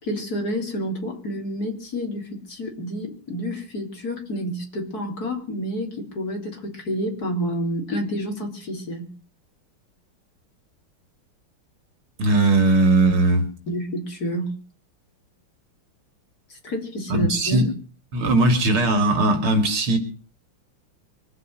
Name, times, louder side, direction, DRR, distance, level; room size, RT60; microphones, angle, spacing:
voice 1, 0.0-9.1 13.7-14.5 16.5-17.6, equal, 45° left, 3.9 m, -29 dB
voice 2, 12.2-13.5 17.1-17.7 18.1-20.0, right 2 dB, 75° right, 3.4 m, -19 dB
24.5 x 8.3 x 6.5 m
omnidirectional pair, 2.4 m